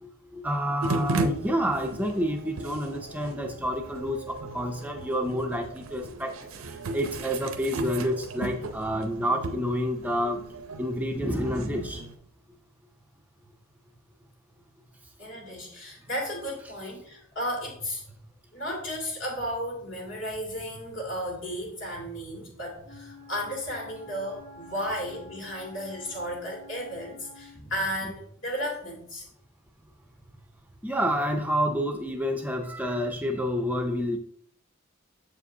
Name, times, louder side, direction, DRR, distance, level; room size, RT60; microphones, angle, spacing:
voice 1, 0.0-10.4 10.8-12.0 30.8-34.2, equal, 10° right, 4 dB, 0.4 m, -29 dB
sound 1, 0.8-12.2, right 2 dB, 90° right, 0.6 m, -35 dB
voice 2, 15.2-18.0 18.5-29.2, equal, 65° left, -3 dB, 2.5 m, -34 dB
Wind instrument woodwind instrument, 22.8-27.6, left 2 dB, 80° left, 1.3 m, -49 dB
7.1 x 4.9 x 2.7 m, 0.65 s
head